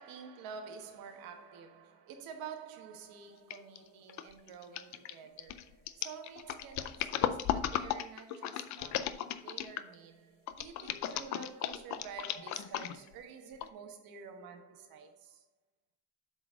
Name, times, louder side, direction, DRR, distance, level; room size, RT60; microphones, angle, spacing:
voice 1, 0.0-15.4, right 6 dB, 85° right, 1.4 m, -49 dB
sound 1, 3.5-3.8 4.1-9.9 10.5-13.1 13.6-13.7, left 11 dB, 55° left, 0.5 m, -35 dB
7.9 x 4.1 x 6.2 m
cardioid pair, 175°, 34 cm